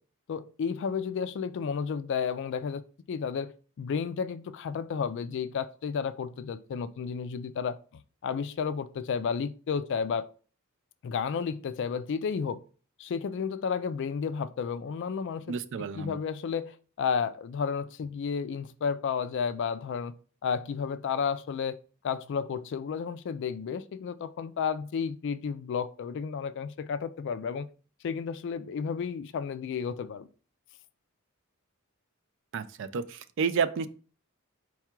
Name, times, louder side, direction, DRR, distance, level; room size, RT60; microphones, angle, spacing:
voice 1, 0.3-2.8 3.1-7.7 8.2-10.2 11.0-12.6 13.0-15.5 15.9-20.1 20.4-21.8 22.0-27.7 28.0-30.3, left 6 dB, 60° left, 0.3 m, -32 dB
voice 2, 15.5-16.1 32.5-33.9, right 6 dB, 60° right, 0.3 m, -30 dB
4.6 x 2.3 x 4.3 m
head